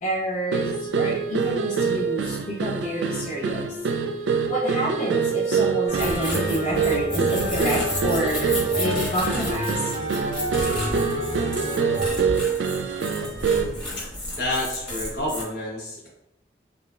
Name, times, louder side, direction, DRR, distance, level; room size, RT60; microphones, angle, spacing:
voice 1, 0.0-3.6 4.5-9.7, equal, 45° left, -7 dB, 0.6 m, -28 dB
sound 1, 0.5-13.8, right 5 dB, 75° right, 0.3 m, -25 dB
sound 2, 5.9-15.4, left 1 dB, 5° left, 1.1 m, -33 dB
sound 3, 5.9-12.1, right 1 dB, 45° right, 0.7 m, -30 dB
voice 2, 14.4-16.1, left 1 dB, 65° left, -5 dB, 1.1 m, -29 dB
3.5 x 2.1 x 2.4 m, 0.83 s
head